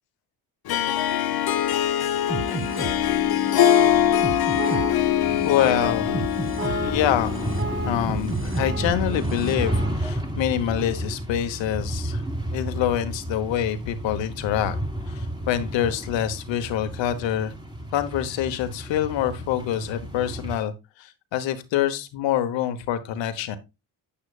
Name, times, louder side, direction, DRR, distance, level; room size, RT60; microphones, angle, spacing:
Harp, 0.7-8.4, left 11 dB, 55° left, 0.9 m, -23 dB
sound 1, 2.3-10.0, right 3 dB, 30° right, 1.2 m, -31 dB
sound 2, 5.2-20.6, right 1 dB, 10° right, 1.9 m, -32 dB
voice 1, 5.3-6.2 6.8-7.3 7.8-12.2 12.5-14.8 15.1-17.5 17.9-23.6, left 11 dB, 85° left, 10 dB, 1.2 m, -26 dB
8.8 x 8.7 x 2.4 m, 0.24 s
cardioid pair, 85°, 44 cm